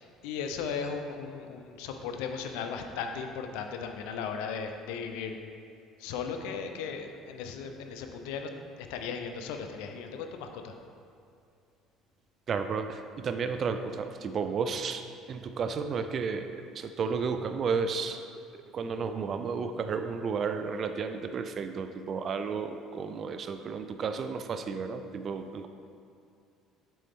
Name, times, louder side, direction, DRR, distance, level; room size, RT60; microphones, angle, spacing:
voice 1, 0.0-5.4 6.0-8.5 8.8-10.7, left 6 dB, 85° left, 5 dB, 0.5 m, -36 dB
voice 2, 12.5-18.2 18.7-25.7, right 5 dB, 45° right, 8 dB, 0.3 m, -32 dB
7.6 x 4.3 x 3.5 m, 2.4 s
supercardioid pair, 95°, 0 cm